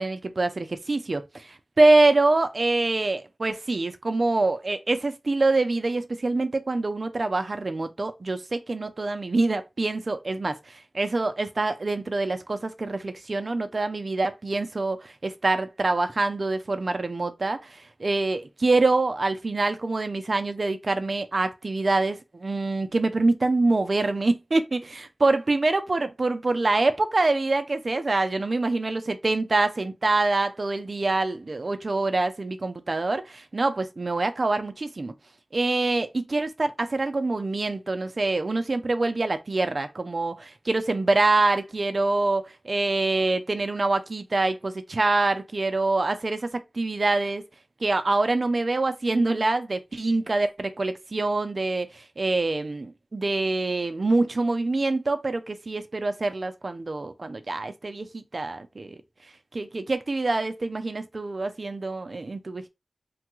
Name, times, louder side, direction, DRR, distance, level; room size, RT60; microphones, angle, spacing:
voice 1, 0.0-35.1 35.5-47.4 47.8-59.0 59.5-62.7, right 2 dB, 55° right, 0.5 m, -25 dB
3.2 x 2.3 x 3.0 m
wide cardioid pair, 55°, 0 cm